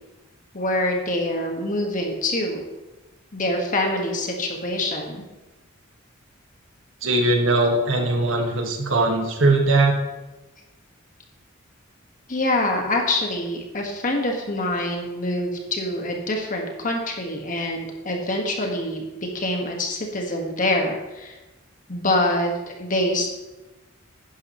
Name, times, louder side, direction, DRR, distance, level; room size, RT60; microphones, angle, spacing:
voice 1, 0.5-2.6 3.3-5.2 12.3-19.0 19.3-21.4 21.9-23.3, left 1 dB, 40° left, 2 dB, 1.6 m, -25 dB
voice 2, 7.0-9.9, right 2 dB, 70° right, 2 dB, 1.6 m, -20 dB
11.0 x 9.4 x 3.1 m, 1.1 s
head